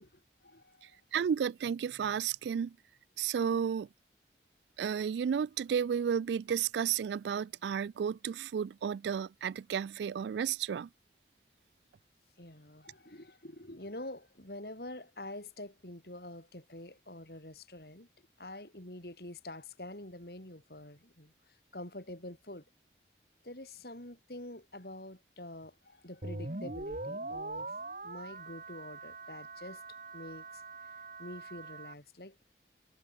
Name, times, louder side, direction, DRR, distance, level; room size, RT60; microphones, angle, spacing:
voice 1, 0.0-1.0 12.4-18.1 18.4-21.3 21.7-22.6 23.4-27.7 28.0-29.8 30.1-30.6 31.2-32.4, left 1 dB, 60° left, 4.7 m, -46 dB
voice 2, 1.1-2.7 3.2-3.9 4.8-10.9, right 7 dB, 75° right, 0.3 m, -32 dB
sound 1, 26.2-31.9, right 2 dB, 45° right, 2.3 m, -42 dB
head